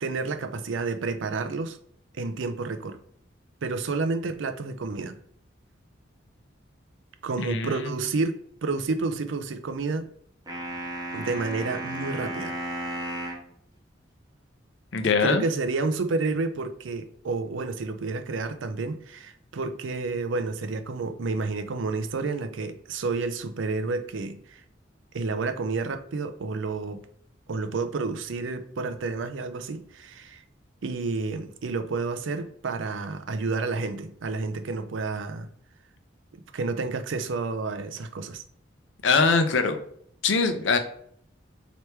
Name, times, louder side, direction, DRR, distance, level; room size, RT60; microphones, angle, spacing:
voice 1, 0.0-1.8 2.1-3.0 3.6-5.2 7.2-10.1 11.1-12.5 15.0-24.6 25.1-27.0 27.5-30.4 30.8-35.5 36.3-38.4, right 3 dB, 80° right, 0.5 m, -30 dB
voice 2, 7.4-7.9 14.9-15.4 39.0-39.8 40.2-40.8, left 4 dB, 70° left, 0.6 m, -22 dB
sound 1, 10.5-13.5, right 1 dB, 20° right, 0.8 m, -34 dB
3.3 x 3.0 x 4.4 m
head